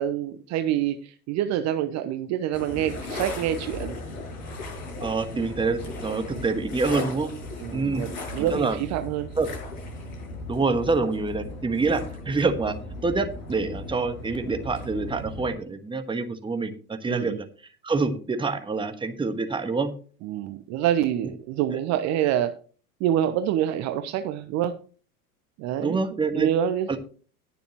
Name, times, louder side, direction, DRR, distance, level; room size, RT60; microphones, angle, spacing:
voice 1, 0.0-4.0 6.3-6.5 7.6-9.3 17.1-17.4 20.2-22.6 23.0-24.7 25.6-27.0, right 10 dB, 35° right, 9 dB, 0.9 m, -27 dB
sound 1, 2.5-15.5, left 2 dB, 60° left, 7.3 m, -37 dB
voice 2, 5.0-7.3 7.7-8.1 8.4-8.8 9.4-9.5 10.5-12.7 13.0-17.4 17.8-19.9 25.8-26.5 26.9-27.0, right 4 dB, 10° right, 8 dB, 1.4 m, -26 dB
19.5 x 7.0 x 3.0 m, 0.39 s
figure-of-eight pair, 80°, 47 cm